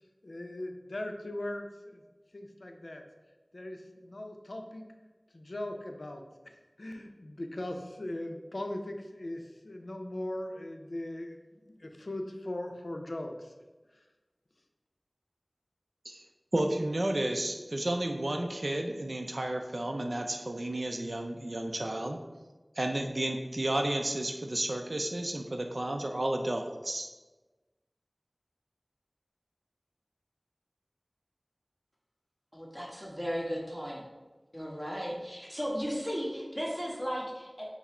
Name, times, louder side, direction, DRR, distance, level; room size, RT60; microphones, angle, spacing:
voice 1, 0.2-2.0 2.3-3.0 3.5-4.8 5.3-13.5, left 1 dB, 85° left, 4 dB, 0.4 m, -39 dB
voice 2, 16.5-22.2 22.8-27.1, right 1 dB, 70° right, 4 dB, 0.4 m, -32 dB
voice 3, 32.5-34.0 34.5-37.7, equal, 5° right, -4 dB, 1.2 m, -35 dB
5.7 x 2.0 x 4.2 m, 1.2 s
wide cardioid pair, 40°, 0 cm